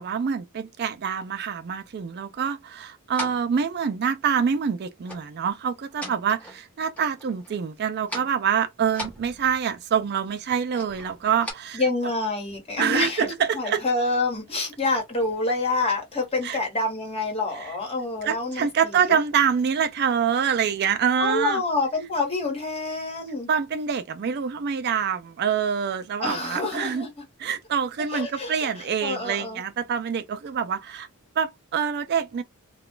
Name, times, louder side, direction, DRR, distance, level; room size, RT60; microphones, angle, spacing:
voice 1, 0.0-11.8 12.8-13.8 16.4-16.6 17.6-17.7 18.2-21.6 23.5-27.1 27.4-31.1 31.4-32.4, right 7 dB, 50° right, 0.4 m, -26 dB
sound 1, 3.1-3.6 5.0-5.3 5.7-6.7 7.0-7.7 8.0-8.4 8.9-9.8 10.7-11.5, left 1 dB, 5° left, 1.1 m, -38 dB
voice 2, 11.7-13.3 13.5-19.2 21.2-23.5 26.2-27.1 28.1-29.6, left 3 dB, 25° left, 1.3 m, -27 dB
2.4 x 2.2 x 3.7 m
head